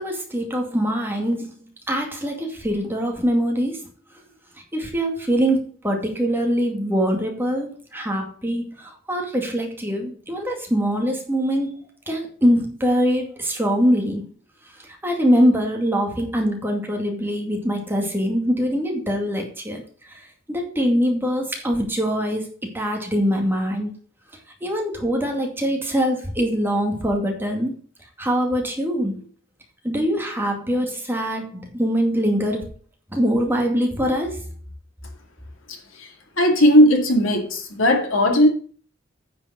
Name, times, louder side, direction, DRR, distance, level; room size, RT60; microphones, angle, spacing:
voice 1, 0.0-1.5 1.9-3.8 4.7-14.2 15.0-19.8 20.1-22.5 22.7-23.9 24.6-27.8 28.2-29.2 29.8-32.6 33.1-34.4, equal, 10° right, 2.2 m, -23 dB
voice 2, 36.4-38.5, equal, 80° left, 2.4 m, -16 dB
9.6 x 5.3 x 6.2 m
head